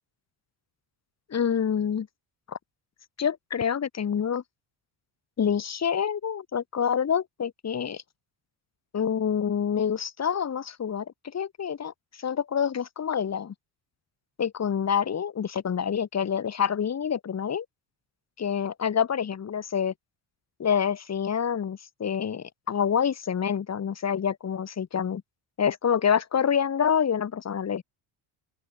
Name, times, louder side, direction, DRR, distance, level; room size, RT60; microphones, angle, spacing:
voice 1, 1.3-2.1 2.5-2.6 3.2-4.4 5.4-8.0 8.9-11.9 12.2-13.5 14.4-17.6 18.4-19.9 20.6-25.2 25.6-27.8, left 7 dB, 35° left, 2.7 m, -27 dB
open air
cardioid pair, 125°, 47 cm